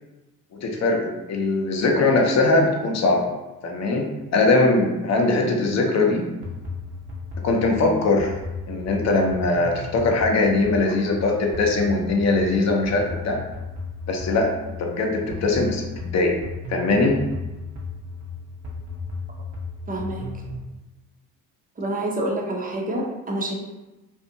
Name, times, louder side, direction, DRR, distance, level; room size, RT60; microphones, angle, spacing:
voice 1, 0.6-3.3 3.6-6.3 7.4-8.4 8.7-13.4 14.1-14.5 14.8-16.4 16.7-17.2, left 3 dB, 35° left, 2 dB, 0.6 m, -21 dB
sound 1, 6.4-20.6, left 3 dB, 60° right, 0.8 m, -35 dB
voice 2, 19.9-20.2 21.8-23.5, right 1 dB, 20° right, -1 dB, 0.6 m, -27 dB
2.6 x 2.4 x 2.7 m, 1.1 s
hypercardioid pair, 50°, 47 cm